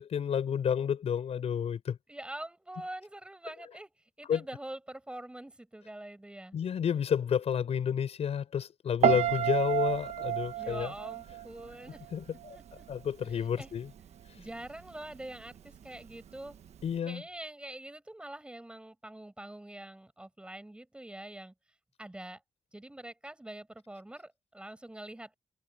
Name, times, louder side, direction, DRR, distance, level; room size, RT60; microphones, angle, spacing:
voice 1, 0.0-2.0 4.3-4.4 6.5-10.9 12.1-12.6 12.9-13.9 16.8-17.2, left 8 dB, 70° left, 6.5 m, -30 dB
voice 2, 2.1-3.9 4.2-6.5 10.4-12.1 12.5-12.9 13.6-13.7 14.4-16.6 17.1-21.5 22.0-22.4 22.7-25.3, right 1 dB, 10° right, 5.9 m, -45 dB
Piano, 9.0-12.1 12.4-12.8, right 11 dB, 80° right, 1.5 m, -30 dB
wide cardioid pair, 160°, 11 cm